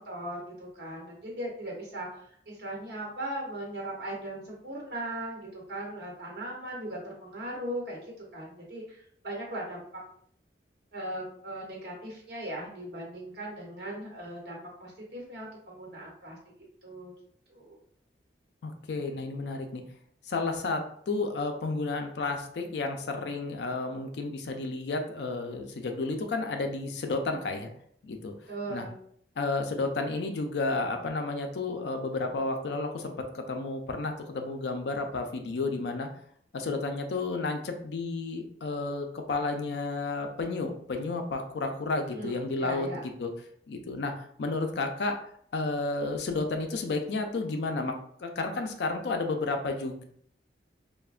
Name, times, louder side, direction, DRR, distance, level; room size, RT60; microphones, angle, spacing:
voice 1, 0.0-10.0 10.9-16.4 16.8-17.1 17.5-17.8 28.5-29.0 42.1-43.0, right 1 dB, 60° right, -2 dB, 0.9 m, -38 dB
voice 2, 18.6-19.8 20.3-27.7 28.0-28.3 28.7-28.9 29.4-36.1 36.5-42.9 43.2-43.3 43.7-45.2 45.5-47.9 48.2-50.0, left 3 dB, 65° left, 5 dB, 0.4 m, -32 dB
3.2 x 2.1 x 2.4 m, 0.64 s
head